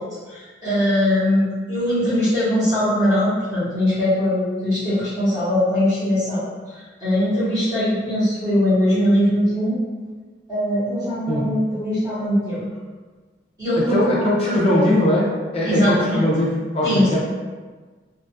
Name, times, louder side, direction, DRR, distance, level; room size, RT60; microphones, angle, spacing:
voice 1, 0.0-6.5 7.0-9.8 10.5-12.6 13.6-14.8 15.6-16.2 16.8-17.2, left 1 dB, 20° right, -11 dB, 0.9 m, -21 dB
voice 2, 13.8-17.2, left 1 dB, 30° left, -4 dB, 0.5 m, -21 dB
2.5 x 2.3 x 2.6 m, 1.4 s
head